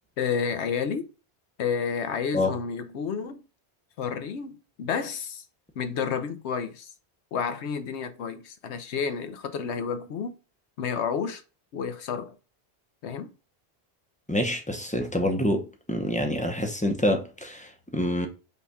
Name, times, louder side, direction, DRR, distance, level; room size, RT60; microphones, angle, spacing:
voice 1, 0.2-1.1 1.6-3.4 4.0-5.4 5.8-6.9 7.3-10.3 10.8-11.4 11.7-12.3 13.0-13.3, left 6 dB, 90° left, 1.0 m, -30 dB
voice 2, 14.3-18.3, left 1 dB, 10° left, 0.6 m, -27 dB
5.5 x 2.3 x 4.1 m
omnidirectional pair, 1.1 m